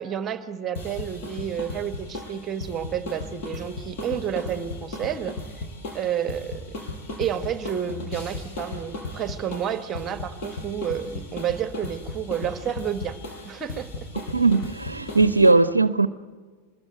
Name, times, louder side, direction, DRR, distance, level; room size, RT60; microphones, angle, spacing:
voice 1, 0.0-5.7 5.9-6.6 7.2-13.2 13.4-13.9, right 9 dB, 25° right, 1.3 m, -30 dB
sound 1, 0.7-15.5, left 2 dB, 45° left, 5.5 m, -36 dB
voice 2, 14.3-16.1, right 3 dB, 80° right, 0.6 m, -19 dB
24.5 x 21.0 x 8.1 m
figure-of-eight pair, 90°, 0 cm